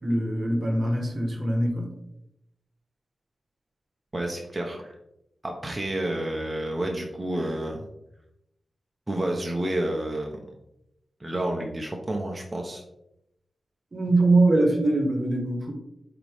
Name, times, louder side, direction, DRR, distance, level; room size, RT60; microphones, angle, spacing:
voice 1, 0.0-1.9 13.9-15.7, right 2 dB, 50° right, 2 dB, 1.5 m, -23 dB
voice 2, 4.1-4.9 5.4-7.8 9.1-10.4 11.2-12.8, right 1 dB, 25° right, 1 dB, 1.2 m, -29 dB
8.3 x 4.1 x 3.7 m, 0.84 s
cardioid pair, 55°, 0 cm